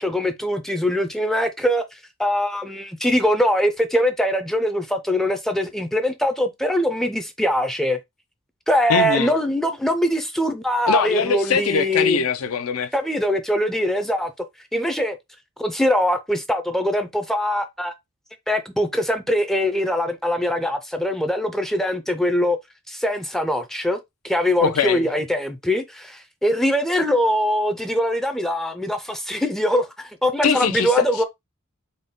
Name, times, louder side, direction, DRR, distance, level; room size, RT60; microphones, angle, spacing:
voice 1, 0.0-1.8 2.2-8.0 8.7-12.2 12.9-14.3 14.7-15.2 15.6-17.9 18.5-22.6 22.9-24.0 24.2-31.2, equal, ahead, 0.3 m, -22 dB
voice 2, 8.9-9.3 10.9-12.9 24.6-25.1 30.4-31.1, left 6 dB, 80° left, 0.5 m, -22 dB
3.9 x 2.1 x 3.6 m
head